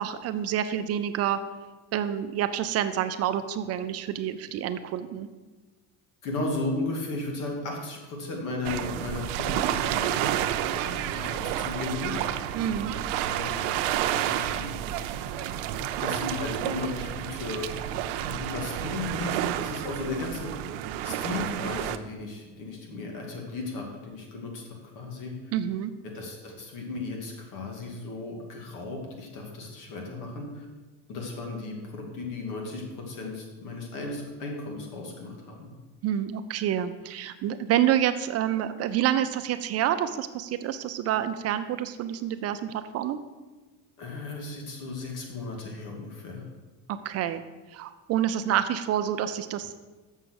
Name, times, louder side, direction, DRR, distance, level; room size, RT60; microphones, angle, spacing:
voice 1, 0.0-1.4 1.9-5.3 12.5-12.9 25.5-25.9 36.0-43.2 46.9-47.4 47.7-49.7, right 10 dB, 45° right, 10 dB, 0.6 m, -28 dB
voice 2, 6.2-12.3 13.3-14.8 16.0-17.7 18.2-20.7 21.0-25.3 26.0-30.7 31.1-35.7 44.0-46.5, left 2 dB, 60° left, 1 dB, 2.5 m, -35 dB
sound 1, 8.6-22.0, right 11 dB, 85° right, 0.6 m, -30 dB
7.0 x 6.6 x 6.4 m, 1.3 s
supercardioid pair, 120°, 36 cm